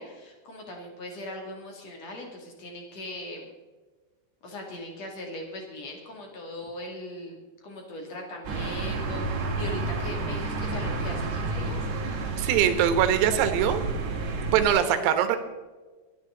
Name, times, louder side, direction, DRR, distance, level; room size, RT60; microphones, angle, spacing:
voice 1, 0.0-3.5 4.4-11.9 14.8-15.0, left 1 dB, 40° left, 1 dB, 2.8 m, -39 dB
sound 1, 8.4-14.7, right 3 dB, 55° right, 3.9 m, -30 dB
voice 2, 12.4-13.8 14.5-15.4, right 9 dB, 85° right, 8 dB, 3.9 m, -22 dB
23.5 x 10.5 x 3.9 m, 1.3 s
omnidirectional pair, 6.0 m